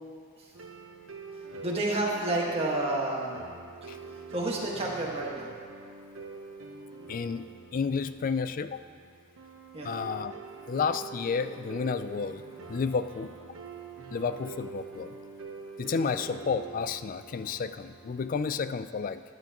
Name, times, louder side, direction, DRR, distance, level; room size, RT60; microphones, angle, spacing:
sound 1, 0.5-18.5, right 5 dB, 75° right, 1.0 m, -45 dB
voice 1, 1.3-3.5 3.8-3.9 4.3-5.5 9.7-9.9 16.0-16.3, right 2 dB, 30° right, -4 dB, 1.6 m, -31 dB
voice 2, 7.1-8.8 9.8-10.3 10.7-13.3 14.1-15.2 15.8-19.2, left 5 dB, 40° left, 12 dB, 0.3 m, -31 dB
13.5 x 10.5 x 3.0 m, 2.1 s
head